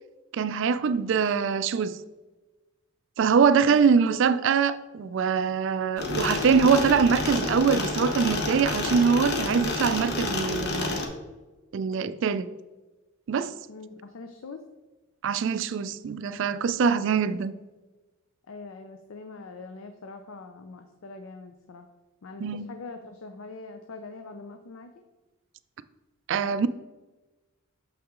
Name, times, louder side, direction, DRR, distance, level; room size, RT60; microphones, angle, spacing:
voice 1, 0.3-1.9 3.2-11.0 11.7-12.5 13.3-13.5 15.2-17.5 22.4-22.7 26.3-26.7, right 6 dB, 55° right, 0.3 m, -23 dB
sound 1, 6.0-11.1, left 3 dB, 50° left, 0.9 m, -29 dB
voice 2, 13.7-14.6 16.7-17.2 18.5-21.9 22.2-24.9, left 3 dB, 65° left, 0.5 m, -42 dB
6.3 x 5.7 x 3.7 m
head